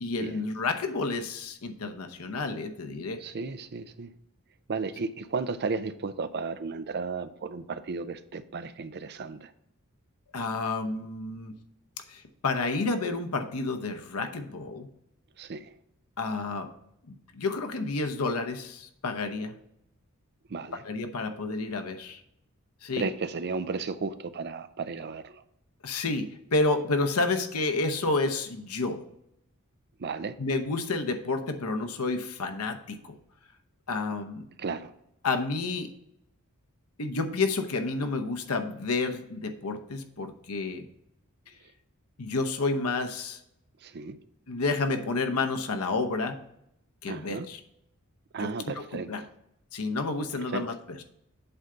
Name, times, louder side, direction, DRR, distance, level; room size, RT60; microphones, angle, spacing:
voice 1, 0.0-3.2 10.3-11.5 12.1-14.9 16.2-16.7 17.1-19.6 20.8-22.2 22.8-23.1 25.8-29.0 30.4-33.2 33.9-34.4 35.2-35.9 37.0-40.8 42.2-43.4 44.5-46.4 47.0-47.6 48.4-48.5 49.1-49.2 49.7-51.0, left 3 dB, 90° left, 6 dB, 0.9 m, -30 dB
voice 2, 3.2-4.1 4.7-9.5 15.4-15.7 20.5-20.8 22.9-25.4 30.0-30.3 34.6-34.9 43.8-44.2 47.1-47.5 48.3-49.3 50.5-50.7, right 4 dB, 50° right, 12 dB, 0.5 m, -34 dB
8.0 x 3.8 x 5.6 m, 0.77 s
head